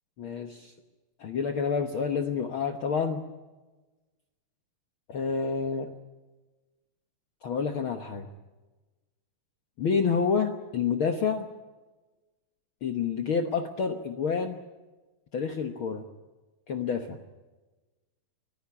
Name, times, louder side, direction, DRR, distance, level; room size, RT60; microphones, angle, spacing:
voice 1, 0.2-0.7 1.2-3.2 5.1-5.9 7.4-8.3 9.8-11.4 12.8-14.6 15.3-16.0 16.7-17.2, left 6 dB, 60° left, 6 dB, 1.3 m, -28 dB
25.0 x 15.5 x 9.8 m, 1.2 s
omnidirectional pair, 4.0 m